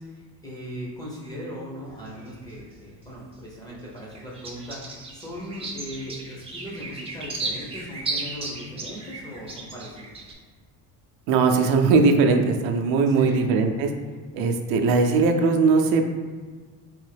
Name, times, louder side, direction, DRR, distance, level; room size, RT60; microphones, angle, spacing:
voice 1, 0.0-10.1 13.1-13.5, equal, 10° left, -5 dB, 0.8 m, -38 dB
sound 1, 1.9-3.4 3.7-10.3, right 3 dB, 15° right, 0.5 m, -35 dB
voice 2, 11.3-13.9 14.3-16.0, right 4 dB, 90° right, 4 dB, 0.6 m, -20 dB
3.6 x 3.0 x 3.3 m, 1.5 s
cardioid pair, 160°, 36 cm